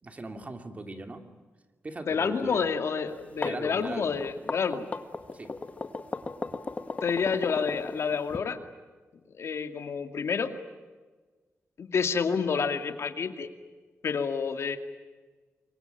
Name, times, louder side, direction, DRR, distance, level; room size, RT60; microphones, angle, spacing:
voice 1, 0.0-1.3 1.8-2.7 3.4-4.2 5.3-5.5, right 2 dB, 30° right, 6 dB, 2.6 m, -40 dB
voice 2, 2.1-4.9 7.0-8.6 9.3-10.5 11.8-13.5 14.0-14.8, left 5 dB, 65° left, 7 dB, 2.4 m, -29 dB
sound 1, 3.1-8.4, left 3 dB, 30° left, 1.5 m, -36 dB
27.0 x 23.0 x 9.1 m, 1.4 s
wide cardioid pair, 150°, 5 cm